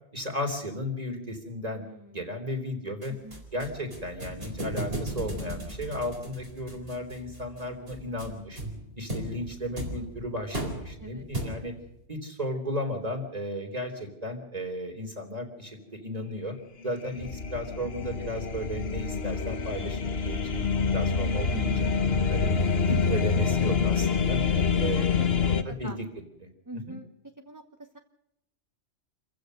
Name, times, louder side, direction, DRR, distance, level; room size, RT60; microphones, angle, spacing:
voice 1, 0.1-3.1 3.5-8.6 9.0-11.7 12.1-16.5 16.8-21.9 22.3-24.4 24.8-25.2 25.5-25.9 26.7-27.0, equal, 35° right, 4 dB, 3.9 m, -34 dB
voice 2, 1.7-2.2 3.1-3.4 11.0-11.2 21.5-21.9 24.5-24.6 24.9-26.0 26.7-27.1 27.4-28.0, right 1 dB, 15° right, 5 dB, 1.1 m, -43 dB
sound 1, 3.0-11.9, right 1 dB, 55° right, 4.5 m, -37 dB
sound 2, 16.8-25.6, left 5 dB, 60° left, 1.4 m, -26 dB
28.0 x 15.5 x 6.6 m, 0.82 s
omnidirectional pair, 1.2 m